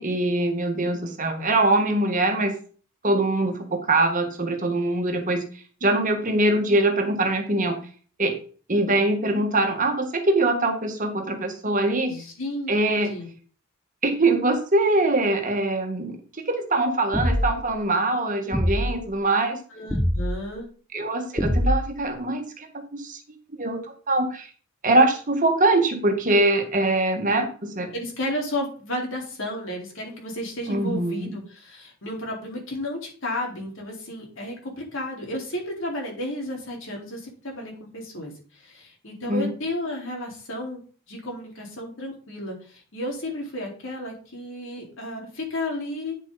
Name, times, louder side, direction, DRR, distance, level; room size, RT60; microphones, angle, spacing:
voice 1, 0.0-2.5 3.0-5.4 5.8-7.8 8.2-8.3 8.7-12.1 12.7-13.1 14.0-19.6 20.9-23.2 23.6-23.8 24.1-24.5 24.8-27.9 30.7-31.3 39.3-39.5, right 2 dB, 35° right, 5 dB, 1.6 m, -23 dB
voice 2, 12.1-12.7 13.0-13.3 19.7-20.7 27.9-40.8 41.1-46.1, left 1 dB, 60° left, -1 dB, 4.1 m, -33 dB
sound 1, 17.1-17.7 18.5-19.0 19.9-20.4 21.4-22.1, equal, ahead, 0.7 m, -23 dB
9.9 x 7.3 x 4.1 m, 0.40 s
head